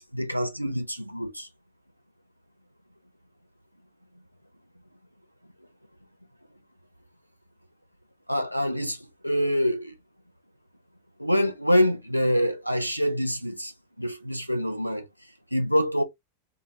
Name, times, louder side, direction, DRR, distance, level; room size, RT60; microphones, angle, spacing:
voice 1, 0.0-1.5 8.3-9.0 9.2-10.0 11.2-15.1 15.5-16.0, equal, 90° right, 0.4 m, -25 dB
3.4 x 2.2 x 2.2 m
figure-of-eight pair, 90°, 0 cm